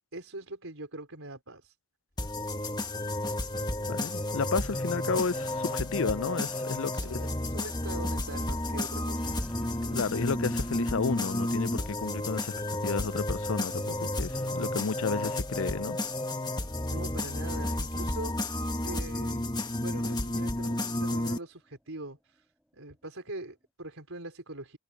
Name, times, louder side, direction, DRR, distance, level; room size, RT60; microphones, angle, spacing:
voice 1, 0.0-1.7 6.9-9.4 16.9-19.5 19.8-22.5 22.7-24.8, right 2 dB, 65° right, 4.9 m, -42 dB
sound 1, 2.1-20.6, equal, 35° left, 6.3 m, -61 dB
sound 2, 2.2-21.4, left 1 dB, 20° left, 1.4 m, -32 dB
voice 2, 3.9-7.2 9.8-12.5 12.8-16.0, left 4 dB, 60° left, 0.5 m, -32 dB
sound 3, 5.1-23.6, equal, 5° right, 5.5 m, -53 dB
head